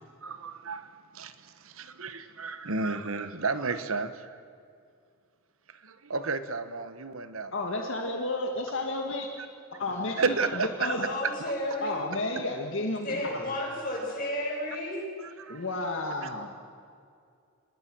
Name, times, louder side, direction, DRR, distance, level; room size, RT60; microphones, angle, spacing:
voice 1, 0.2-4.4 5.7-7.7 10.2-10.9 12.4-12.5 15.2-15.6 16.0-16.3, right 4 dB, 70° right, 11 dB, 1.3 m, -33 dB
voice 2, 7.5-9.5 9.8-11.1 11.8-13.5 15.5-16.7, left 2 dB, 60° left, 2 dB, 1.9 m, -32 dB
voice 3, 10.8-12.0 13.0-15.1, left 1 dB, 40° left, -3 dB, 7.8 m, -32 dB
26.5 x 20.5 x 6.3 m, 2.3 s
head